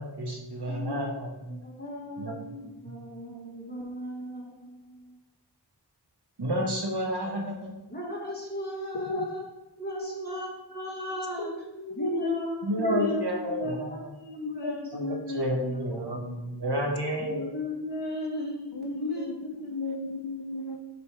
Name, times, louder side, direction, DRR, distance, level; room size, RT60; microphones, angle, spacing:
voice 1, 0.0-1.5 2.2-2.4 6.4-7.7 12.6-14.1 14.9-17.5, equal, 65° right, 0 dB, 1.4 m, -30 dB
voice 2, 0.7-1.2 1.4-5.2 7.9-9.4 9.8-11.5 11.9-12.6 12.9-15.9 17.1-19.7, left 1 dB, 20° left, -5 dB, 1.9 m, -36 dB
voice 3, 8.9-9.3 9.9-10.2 11.4-11.5 11.9-12.4 12.8-13.4 14.6-15.6 15.9-16.6 16.9-17.0 18.7-20.8, left 2 dB, 60° left, 5 dB, 0.8 m, -35 dB
5.5 x 4.1 x 4.9 m, 0.97 s
wide cardioid pair, 65°, 43 cm